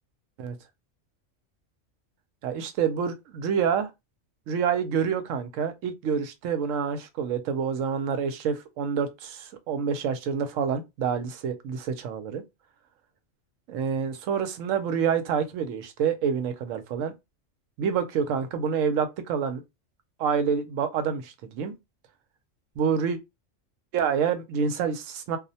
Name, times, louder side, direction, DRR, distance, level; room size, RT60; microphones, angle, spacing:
voice 1, 2.4-3.9 4.5-12.4 13.7-17.1 17.8-19.6 20.2-21.7 22.8-23.2 23.9-25.4, right 7 dB, 85° right, 0.9 m, -27 dB
2.4 x 2.0 x 2.6 m
omnidirectional pair, 1.3 m